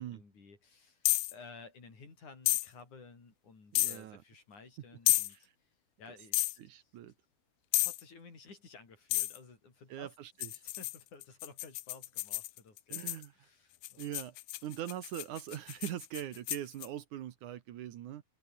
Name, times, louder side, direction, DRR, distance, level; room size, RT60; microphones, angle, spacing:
voice 1, 0.0-5.7 6.0-6.9 7.7-10.1 10.6-14.1, left 4 dB, 50° left, 7.4 m, -55 dB
sound 1, 1.0-1.3 2.5-2.7 3.7-4.0 5.1-5.3 6.3-6.6 7.7-8.0 9.1-9.4 10.4-13.2 13.8-16.9, left 19 dB, 90° left, 2.6 m, -31 dB
voice 2, 3.7-4.2 5.3-5.5 6.6-7.1 9.9-10.6 12.9-13.3 14.0-14.4 14.6-18.2, right 12 dB, 65° right, 2.3 m, -42 dB
omnidirectional pair, 4.3 m